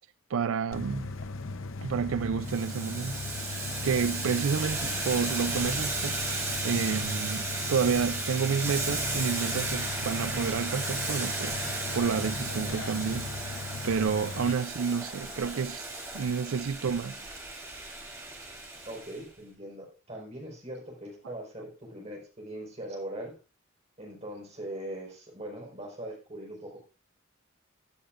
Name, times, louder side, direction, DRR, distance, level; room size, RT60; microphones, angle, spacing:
voice 1, 0.3-1.1 1.8-3.2 3.8-6.2 6.6-13.6 13.8-15.9 16.1-17.3, right 6 dB, 80° right, 0.4 m, -30 dB
sound 1, 0.7-14.5, left 3 dB, 70° left, 0.8 m, -38 dB
Boiling, 2.4-19.2, right 2 dB, 15° right, 2.4 m, -35 dB
voice 2, 18.9-23.4 24.0-26.8, right 1 dB, 30° right, 4.7 m, -41 dB
16.0 x 9.8 x 2.5 m
head